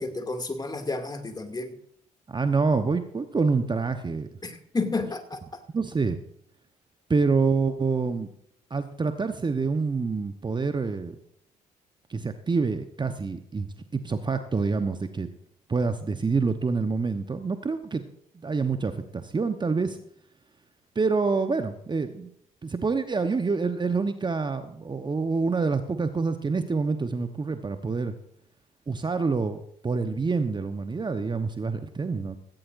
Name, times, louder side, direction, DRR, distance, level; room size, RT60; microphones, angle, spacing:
voice 1, 0.0-1.8 4.4-5.4, left 3 dB, 20° left, 5 dB, 2.4 m, -31 dB
voice 2, 2.3-4.3 5.7-6.2 7.1-8.3 8.7-11.2 12.1-15.3 15.7-18.0 18.3-20.0 20.9-22.3 22.6-28.1 28.9-32.4, right 4 dB, 25° right, 9 dB, 1.0 m, -27 dB
16.5 x 16.0 x 2.6 m, 0.68 s
figure-of-eight pair, 50°, 19 cm